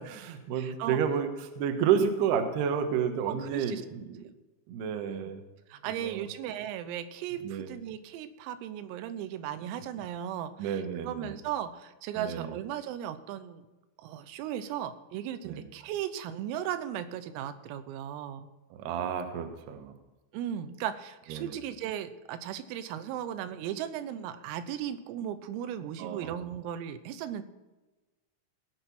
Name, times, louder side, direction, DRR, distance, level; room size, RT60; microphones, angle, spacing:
voice 1, 0.0-4.3 4.7-5.4 6.0-6.2 7.4-7.7 9.7-9.9 10.6-11.4 12.1-12.5 15.4-15.7 18.8-19.9 21.3-21.6 26.0-26.3, right 7 dB, 70° right, 7 dB, 2.8 m, -31 dB
voice 2, 0.6-1.0 3.3-3.8 5.1-5.2 5.7-13.6 14.0-18.5 20.3-27.4, right 10 dB, 90° right, 12 dB, 3.5 m, -36 dB
18.5 x 6.6 x 5.9 m, 1.1 s
omnidirectional pair, 5.9 m